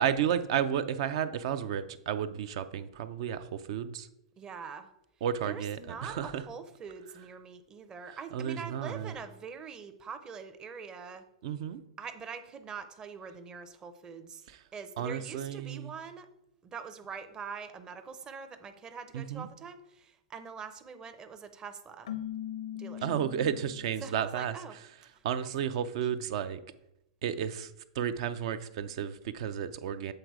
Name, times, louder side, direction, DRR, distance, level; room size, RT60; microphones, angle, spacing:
voice 1, 0.0-4.1 5.2-6.4 8.3-9.1 11.4-11.8 14.5-14.6 15.0-15.9 19.1-19.5 23.0-24.5 25.2-26.6 27.2-30.1, right 9 dB, 60° right, 12 dB, 0.5 m, -32 dB
voice 2, 4.4-4.9 5.4-11.2 12.0-14.5 14.7-16.3 16.6-22.1 22.7-23.1 24.0-24.8 25.1-25.2, right 6 dB, 20° right, 9 dB, 0.7 m, -44 dB
Keyboard (musical), 22.1-24.0, left 11 dB, 80° left, 0.6 m, -40 dB
7.7 x 4.0 x 4.7 m, 0.83 s
hypercardioid pair, 130°, 3 cm